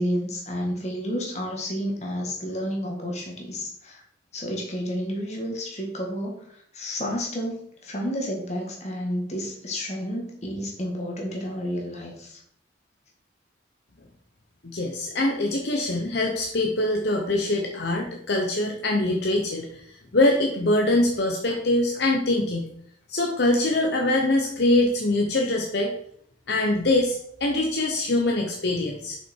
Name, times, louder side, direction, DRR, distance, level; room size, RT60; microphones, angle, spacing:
voice 1, 0.0-4.0 4.3-12.4, equal, 35° left, 0 dB, 1.9 m, -31 dB
voice 2, 14.6-22.7 23.1-25.9 26.5-29.2, left 2 dB, 60° left, 1 dB, 0.9 m, -23 dB
6.7 x 5.8 x 4.6 m, 0.66 s
head